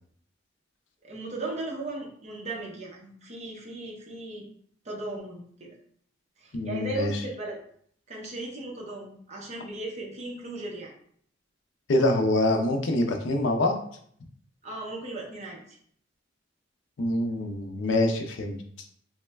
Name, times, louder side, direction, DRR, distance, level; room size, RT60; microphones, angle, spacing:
voice 1, 1.0-4.5 4.8-5.8 6.4-7.6 8.1-10.9 14.6-15.8, right 2 dB, 35° right, -2 dB, 0.6 m, -37 dB
voice 2, 6.5-7.1 11.9-13.8 17.0-18.6, left 1 dB, 65° left, 4 dB, 0.5 m, -25 dB
3.1 x 2.1 x 3.3 m, 0.62 s
head